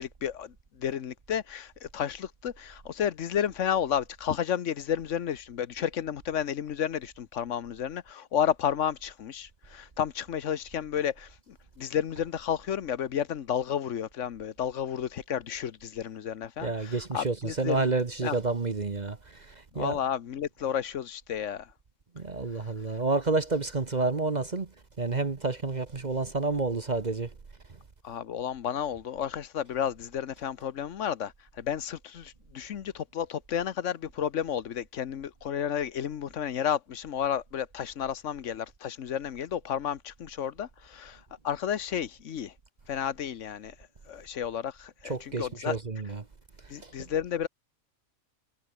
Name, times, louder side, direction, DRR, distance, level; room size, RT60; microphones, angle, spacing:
voice 1, 0.0-17.8 18.2-18.3 19.7-21.7 28.0-42.5 42.9-43.7 44.1-45.8 46.7-47.5, left 9 dB, 65° left, 1.2 m, -32 dB
voice 2, 16.6-20.0 22.1-27.4 27.7-27.8 45.0-46.3 46.6-47.1, right 3 dB, 35° right, 1.2 m, -30 dB
omnidirectional pair, 1.4 m